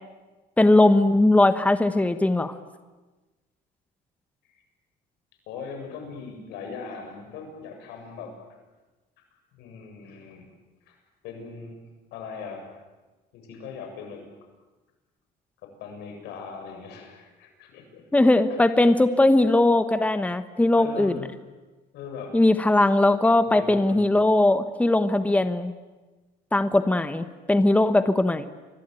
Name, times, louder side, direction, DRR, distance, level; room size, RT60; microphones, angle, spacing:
voice 1, 0.6-2.5 18.1-21.2 22.3-25.7 26.5-28.5, left 2 dB, 10° left, 10 dB, 1.3 m, -20 dB
voice 2, 5.5-8.4 9.5-10.5 10.9-11.0 11.2-11.8 12.1-12.8 13.3-14.2 15.6-18.0 18.5-18.7 20.8-21.4 21.9-22.4 23.5-24.1, left 5 dB, 90° left, 4 dB, 7.7 m, -40 dB
28.5 x 22.0 x 9.3 m, 1.2 s
cardioid pair, 110°, 17 cm